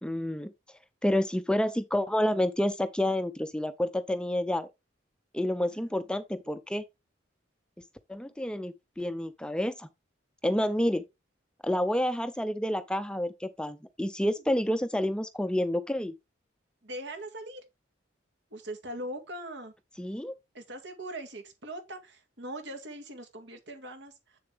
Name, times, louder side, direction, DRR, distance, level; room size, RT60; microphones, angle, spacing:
voice 1, 0.0-0.5 1.0-4.7 5.3-6.8 8.1-9.9 10.4-11.0 11.6-16.1 20.0-20.3, left 1 dB, 5° left, 0.5 m, -29 dB
voice 2, 5.7-6.1 14.3-14.4 16.8-17.6 18.5-19.7 20.5-24.4, right 1 dB, 70° right, 2.1 m, -41 dB
7.7 x 6.9 x 3.5 m
head